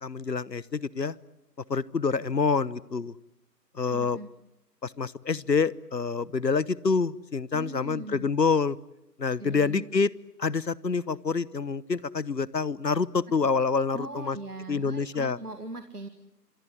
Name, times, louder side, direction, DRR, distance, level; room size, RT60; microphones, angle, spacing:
voice 1, 0.0-1.1 1.7-3.1 3.7-4.2 4.8-8.8 9.2-10.1 10.4-14.4 14.7-15.4, left 5 dB, 80° left, 22 dB, 1.1 m, -27 dB
voice 2, 3.9-4.3 7.5-8.3 9.4-9.9 13.9-16.1, right 2 dB, 65° right, 9 dB, 2.0 m, -40 dB
26.5 x 22.5 x 10.0 m, 0.89 s
figure-of-eight pair, 165°, 49 cm